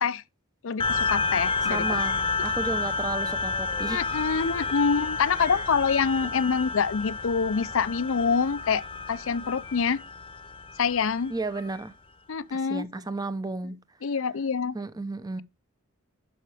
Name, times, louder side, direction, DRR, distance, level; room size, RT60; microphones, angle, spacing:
voice 1, 0.6-1.8 3.9-8.8 9.1-10.0 10.8-11.3 12.3-12.9 14.0-14.8, left 5 dB, 70° left, 0.5 m, -26 dB
sound 1, 0.8-11.7, left 4 dB, 25° left, 0.9 m, -30 dB
voice 2, 1.6-4.0 4.4-4.7 5.4-5.6 11.3-11.9 12.5-13.8 14.7-15.4, right 3 dB, 20° right, 0.7 m, -33 dB
11.0 x 5.8 x 3.4 m
head